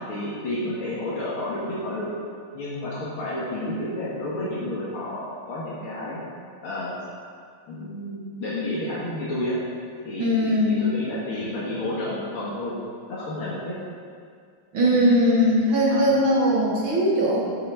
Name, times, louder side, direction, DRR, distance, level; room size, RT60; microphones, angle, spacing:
voice 1, 0.0-2.1 2.5-6.2 6.6-7.0 7.7-9.6 10.0-12.7 13.1-13.8 14.9-15.1 15.9-16.1, left 1 dB, 80° left, -8 dB, 2.6 m, -30 dB
voice 2, 10.2-10.9 14.7-17.4, equal, 65° right, -4 dB, 2.6 m, -20 dB
9.0 x 7.9 x 5.7 m, 2.2 s
omnidirectional pair, 2.3 m